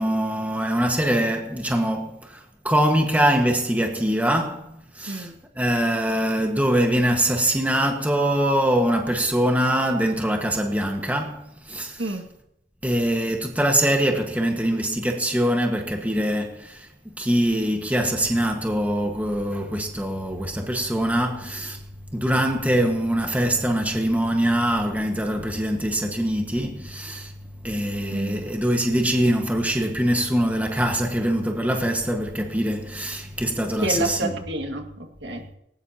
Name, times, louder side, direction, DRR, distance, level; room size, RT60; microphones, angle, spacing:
voice 1, 0.0-12.0 12.8-16.9 17.2-21.8 22.1-27.3 27.6-34.3, right 1 dB, 10° right, 1.6 m, -23 dB
voice 2, 5.1-5.4 12.0-12.3 28.1-28.4 33.8-35.5, right 2 dB, 65° right, 2.1 m, -29 dB
19.0 x 18.5 x 2.9 m
head